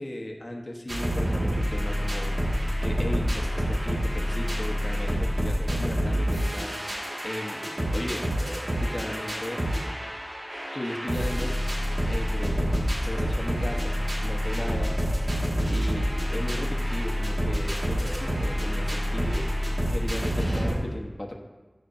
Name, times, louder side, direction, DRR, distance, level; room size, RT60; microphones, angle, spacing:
voice 1, 0.0-2.3 2.8-6.8 7.2-7.6 7.9-8.2 8.8-9.6 10.7-11.6 12.1-12.7 13.0-14.0 14.2-15.0 15.7-16.1 16.3-19.5 19.9-21.4, left 1 dB, 55° left, 1 dB, 1.1 m, -36 dB
sound 1, 0.9-20.8, equal, 90° right, 2.0 m, -27 dB
13.5 x 6.1 x 2.7 m, 1.3 s
wide cardioid pair, 45°, 0 cm